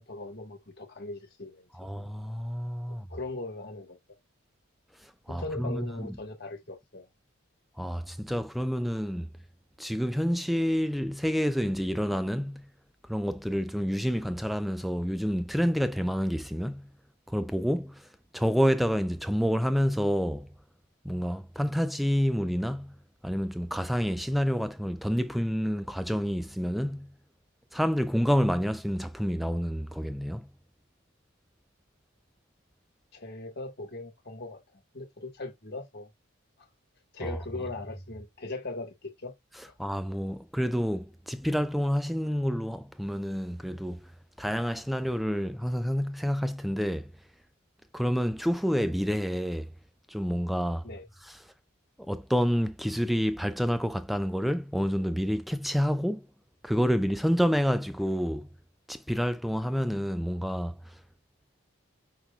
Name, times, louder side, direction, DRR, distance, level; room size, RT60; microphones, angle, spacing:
voice 1, 0.0-1.7 2.9-4.0 5.3-7.1 33.1-36.1 37.1-39.3 50.8-51.0, left 2 dB, 50° left, 1.3 m, -39 dB
voice 2, 1.7-3.1 5.0-6.2 7.8-9.3 9.8-12.6 13.1-16.9 17.3-18.1 18.3-20.5 21.0-22.9 23.2-27.1 27.7-30.5 37.2-37.4 39.6-44.1 44.4-47.1 47.9-49.7 50.1-50.9 51.2-51.4 52.0-56.3 56.6-58.5 58.9-61.0, equal, ahead, 0.3 m, -28 dB
5.9 x 3.5 x 2.3 m
head